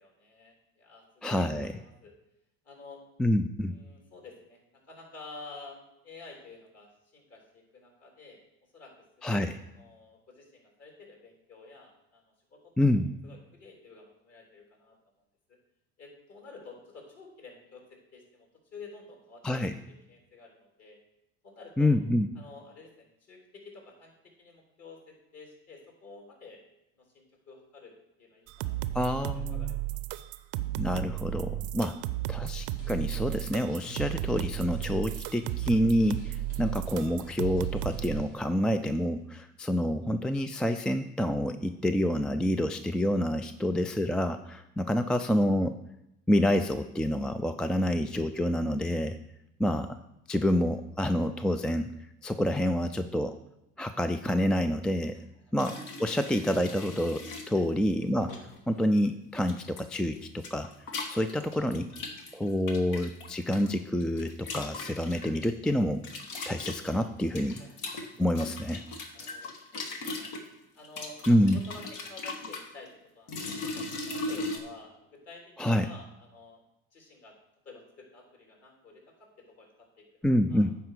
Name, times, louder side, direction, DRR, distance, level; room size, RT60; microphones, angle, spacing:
voice 1, 0.0-2.1 2.6-3.0 3.7-4.6 4.9-8.4 8.7-8.9 9.2-9.4 9.7-12.2 12.5-12.7 13.2-15.0 15.5-15.6 16.0-19.6 19.9-21.0 21.4-21.9 22.4-24.1 24.4-26.6 27.0-28.9 29.3-30.0 56.0-56.2 57.5-57.7 67.0-67.1 67.4-67.7 68.8-70.3 70.7-73.9 74.1-76.6 76.9-77.4 77.7-80.6, left 3 dB, 45° left, 0 dB, 3.5 m, -50 dB
voice 2, 1.2-1.7 3.2-3.8 9.2-9.6 12.8-13.1 19.4-19.7 21.8-22.3 28.9-29.8 30.8-32.0 32.3-45.8 46.3-49.2 49.6-50.0 50.3-51.9 52.2-53.4 53.8-55.2 55.5-58.4 58.7-60.7 61.1-61.9 62.3-66.0 66.4-67.6 68.2-68.8 71.3-71.6 75.6-75.9 80.2-80.8, left 1 dB, ahead, 9 dB, 0.3 m, -27 dB
sound 1, 28.5-38.2, right 13 dB, 60° right, 0.6 m, -34 dB
sound 2, 32.6-38.4, right 1 dB, 85° left, 2.7 m, -48 dB
sound 3, 55.6-57.5 58.3-58.6 59.5-59.9 60.1-63.7 64.0-65.5 66.0-70.4 70.8-72.7 73.3-74.6, left 2 dB, 60° left, 1.7 m, -38 dB
9.4 x 4.7 x 6.7 m, 0.85 s
hypercardioid pair, 80°, 35 cm